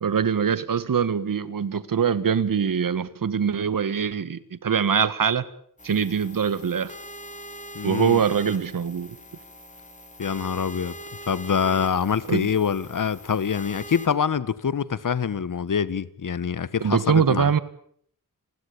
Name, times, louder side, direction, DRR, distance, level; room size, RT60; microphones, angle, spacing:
voice 1, 0.0-5.4 5.8-6.9 7.8-9.2 12.3-12.5 16.8-17.6, right 7 dB, 75° right, 1.6 m, -23 dB
sound 1, 5.8-14.1, equal, 20° left, 3.9 m, -42 dB
voice 2, 7.7-8.2 10.2-11.0 11.3-17.5, left 7 dB, 70° left, 1.4 m, -25 dB
29.5 x 20.0 x 8.5 m
wide cardioid pair, 125°, 33 cm